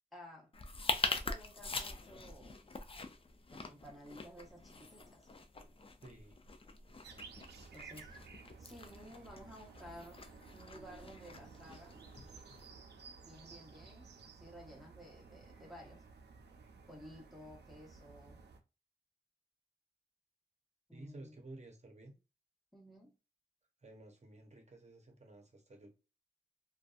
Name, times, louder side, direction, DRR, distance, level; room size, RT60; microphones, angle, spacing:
voice 1, 0.1-0.5 1.0-2.6 3.5-5.3 7.7-8.2 8.6-10.2 10.5-12.0 13.2-16.0 16.9-18.4 20.9-21.4 22.7-23.1, equal, ahead, 1.1 m, -54 dB
sound 1, 0.5-12.7, left 3 dB, 35° left, 0.4 m, -43 dB
voice 2, 6.0-6.4 20.9-22.2 23.8-25.9, right 2 dB, 40° right, 0.8 m, -53 dB
sound 2, 7.0-18.6, right 4 dB, 80° right, 0.5 m, -55 dB
2.5 x 2.3 x 2.4 m
cardioid pair, 55°, 17 cm